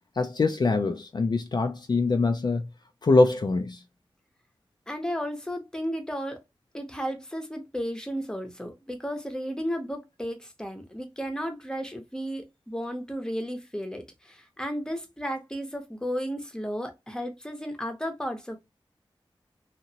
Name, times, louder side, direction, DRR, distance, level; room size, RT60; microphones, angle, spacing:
voice 1, 0.2-2.7 3.0-3.8, left 3 dB, 50° left, 0.4 m, -23 dB
voice 2, 4.9-6.4 6.7-18.6, equal, 10° left, 0.8 m, -33 dB
2.9 x 2.5 x 2.8 m
wide cardioid pair, 65°, 9 cm